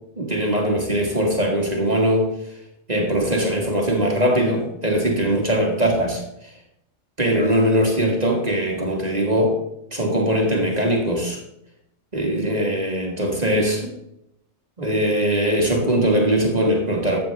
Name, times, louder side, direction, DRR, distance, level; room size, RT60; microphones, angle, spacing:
voice 1, 0.2-2.3 2.9-6.5 7.2-9.6 9.9-11.4 12.1-13.9 14.8-17.2, right 1 dB, 35° right, 0 dB, 1.6 m, -21 dB
13.0 x 7.9 x 3.3 m, 0.79 s
omnidirectional pair, 1.3 m